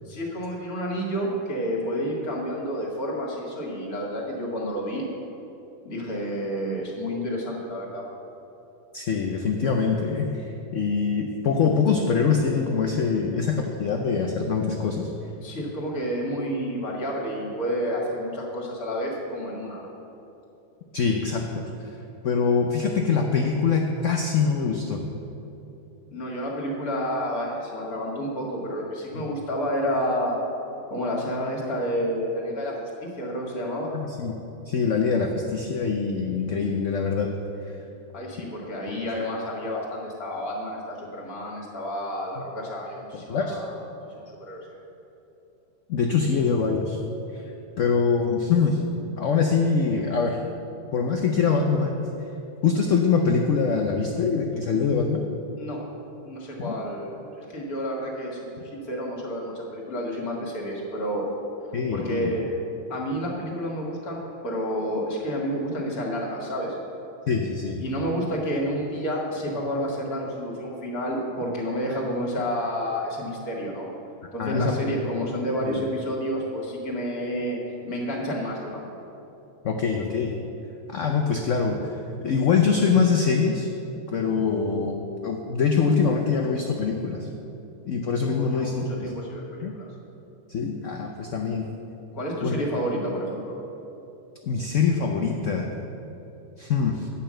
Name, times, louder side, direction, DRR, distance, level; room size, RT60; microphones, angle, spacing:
voice 1, 0.1-5.1 5.8-8.1 15.4-19.9 26.1-30.4 30.9-34.3 38.1-43.8 44.2-44.8 55.6-55.8 56.2-61.3 61.9-62.5 62.9-66.8 67.8-73.9 74.3-77.6 77.8-78.9 88.2-89.9 92.1-93.5, equal, 50° left, -2 dB, 2.0 m, -30 dB
voice 2, 8.9-10.4 10.7-15.1 20.9-21.9 22.2-25.0 29.1-29.2 33.9-34.4 34.7-37.3 37.7-37.8 38.9-39.0 43.1-43.6 45.9-47.0 47.3-47.4 47.8-48.8 49.2-50.4 50.9-52.0 52.6-55.2 56.6-56.7 61.7-62.3 67.3-67.8 74.4-75.0 75.6-75.8 79.6-80.4 80.9-83.7 84.1-87.3 87.8-89.1 89.6-89.7 90.5-91.7 92.4-92.6 94.4-95.7 96.6-97.1, left 5 dB, 80° left, 2 dB, 0.6 m, -24 dB
8.8 x 5.6 x 7.4 m, 3.0 s
omnidirectional pair, 2.1 m